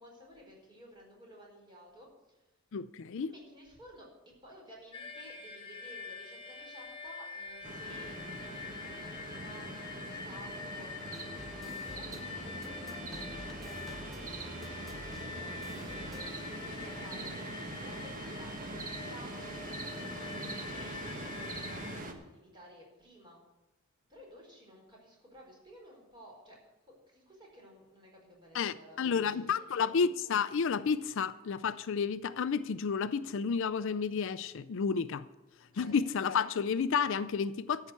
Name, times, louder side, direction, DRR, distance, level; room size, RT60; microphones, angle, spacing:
voice 1, 0.0-2.5 3.2-23.4 24.1-26.6 26.8-30.0 35.7-36.0, equal, 20° right, 4.5 m, -55 dB
voice 2, 2.7-3.3 28.5-35.3 35.7-37.9, left 6 dB, 65° left, 0.4 m, -31 dB
sound 1, 4.9-22.0, left 4 dB, 20° left, 1.8 m, -45 dB
sound 2, 7.6-22.1, right 2 dB, 40° right, 1.3 m, -43 dB
sound 3, 11.0-16.3, equal, ahead, 0.7 m, -48 dB
13.5 x 5.8 x 8.2 m
head